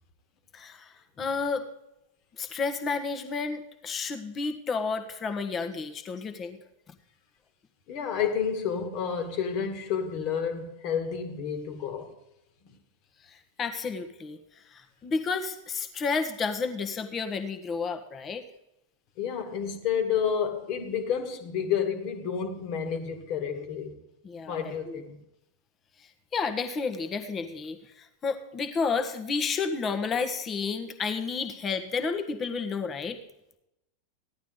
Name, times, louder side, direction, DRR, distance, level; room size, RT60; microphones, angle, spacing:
voice 1, 0.5-1.6 2.4-6.6 13.3-14.4 14.7-18.4 24.2-24.6 24.9-25.0 26.3-33.2, left 5 dB, 25° left, 1.4 m, -31 dB
voice 2, 7.9-12.1 12.6-12.8 19.2-23.9 24.5-25.2, left 7 dB, 45° left, 2.0 m, -30 dB
16.0 x 11.5 x 3.9 m
figure-of-eight pair, 90°, 0 cm